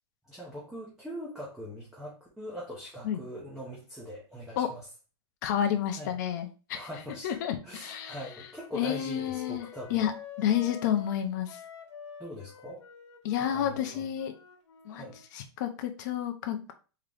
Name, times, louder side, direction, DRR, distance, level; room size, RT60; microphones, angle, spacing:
voice 1, 0.3-4.8 6.0-6.1 6.7-7.4 7.6-10.0 12.2-12.8 13.5-14.0 14.9-15.2, equal, 5° right, -5 dB, 0.6 m, -42 dB
voice 2, 5.4-6.9 7.2-8.5 8.7-10.1 10.4-11.6 13.2-14.3 14.8-15.1 15.3-16.7, left 10 dB, 40° left, 6 dB, 0.6 m, -30 dB
Wind instrument woodwind instrument, 7.8-15.2, left 7 dB, 85° left, 1.1 m, -48 dB
3.8 x 2.8 x 3.4 m, 0.35 s
supercardioid pair, 170°, 14 cm